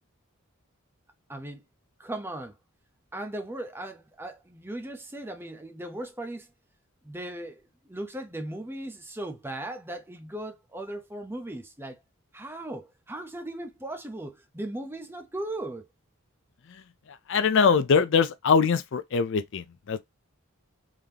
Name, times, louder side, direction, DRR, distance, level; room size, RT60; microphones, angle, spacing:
voice 1, 1.3-1.6 2.0-2.5 3.1-6.5 7.0-7.6 7.9-12.0 12.3-15.9, right 1 dB, 10° right, 0.7 m, -37 dB
voice 2, 17.3-20.1, left 5 dB, 55° left, 0.4 m, -23 dB
3.7 x 3.4 x 2.8 m
head